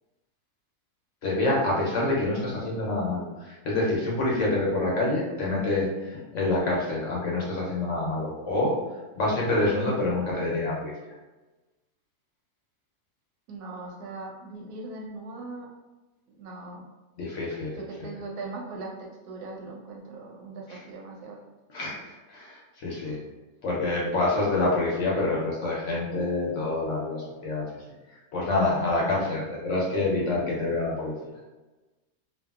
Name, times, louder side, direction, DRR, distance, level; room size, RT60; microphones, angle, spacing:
voice 1, 1.2-8.8 9.2-10.9 17.2-18.1 21.7-23.2 23.6-27.6 28.3-31.1, left 2 dB, 65° left, -4 dB, 0.8 m, -27 dB
voice 2, 13.5-15.7 16.4-16.8 17.7-21.4 22.9-23.2 29.0-29.3, right 3 dB, 85° right, 0 dB, 1.1 m, -40 dB
2.8 x 2.3 x 2.2 m, 1.2 s
omnidirectional pair, 1.6 m